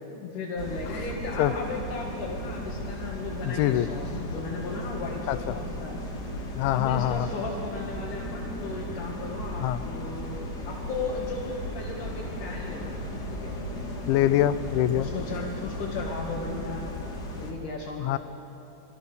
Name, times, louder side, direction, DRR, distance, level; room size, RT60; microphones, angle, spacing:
voice 1, 0.1-6.0 6.7-10.4 10.6-12.9 13.3-13.6 15.0-16.8 17.4-18.2, left 3 dB, 50° left, -4 dB, 3.1 m, -36 dB
sound 1, 0.6-17.5, left 1 dB, 30° left, 2.1 m, -36 dB
voice 2, 3.4-3.9 5.3-5.4 6.6-7.3 9.6-9.8 14.1-15.1 18.0-18.2, left 13 dB, 85° left, 13 dB, 3.1 m, -24 dB
28.0 x 22.5 x 7.0 m, 2.8 s
omnidirectional pair, 5.3 m